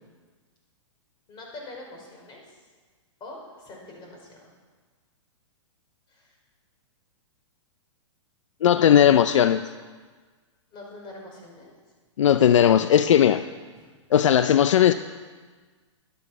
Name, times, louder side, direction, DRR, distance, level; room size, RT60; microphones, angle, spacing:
voice 1, 1.3-2.6 3.2-4.4 6.1-6.3 10.7-11.7 13.7-13.9, left 2 dB, 30° left, 0 dB, 4.9 m, -44 dB
voice 2, 8.6-9.6 12.2-13.4 14.1-14.9, left 9 dB, 75° left, 11 dB, 0.5 m, -17 dB
12.0 x 12.0 x 6.1 m, 1.5 s
hypercardioid pair, 125°, 16 cm